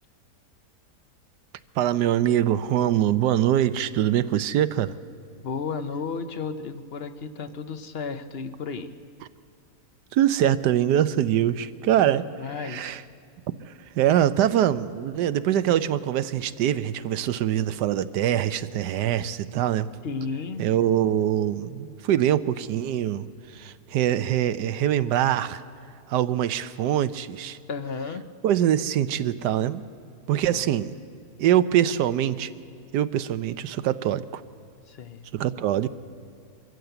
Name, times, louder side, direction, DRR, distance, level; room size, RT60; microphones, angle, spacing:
voice 1, 1.8-4.9 10.1-12.2 12.6-13.0 13.7-19.9 20.6-23.3 23.5-25.6 26.1-27.6 28.4-29.8 30.3-31.0 31.4-32.5 32.9-34.4 35.3-35.9, right 11 dB, 85° right, 13 dB, 1.3 m, -23 dB
voice 2, 5.4-9.0 12.0-13.0 20.0-20.7 27.7-28.2 30.5-30.7 34.9-35.2, left 5 dB, 50° left, 10 dB, 0.8 m, -33 dB
23.0 x 14.5 x 8.0 m, 2.4 s
omnidirectional pair, 1.8 m